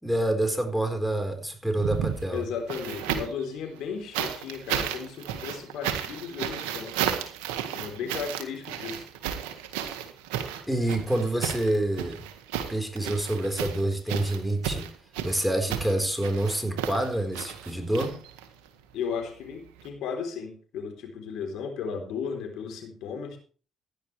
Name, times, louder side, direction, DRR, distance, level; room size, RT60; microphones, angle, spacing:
voice 1, 0.0-2.4 10.7-12.3 12.7-14.9 15.2-18.2, right 1 dB, ahead, 5 dB, 4.3 m, -27 dB
sound 1, 1.7-3.4 4.1-18.7 19.8-19.9, right 9 dB, 90° right, 1.7 m, -33 dB
voice 2, 2.3-6.9 7.7-9.1 18.9-23.4, left 6 dB, 75° left, 3 dB, 3.7 m, -35 dB
16.0 x 11.0 x 3.3 m, 0.40 s
supercardioid pair, 55°, 0 cm